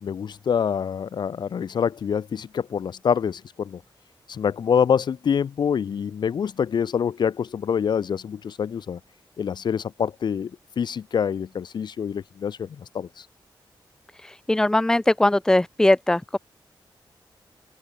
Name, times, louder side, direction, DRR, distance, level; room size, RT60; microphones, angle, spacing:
voice 1, 0.0-3.8 4.3-9.0 9.4-10.5 10.8-13.3, left 7 dB, 60° left, 0.9 m, -26 dB
voice 2, 14.5-16.4, left 1 dB, 5° left, 0.9 m, -20 dB
open air
wide cardioid pair, 180°, 8 cm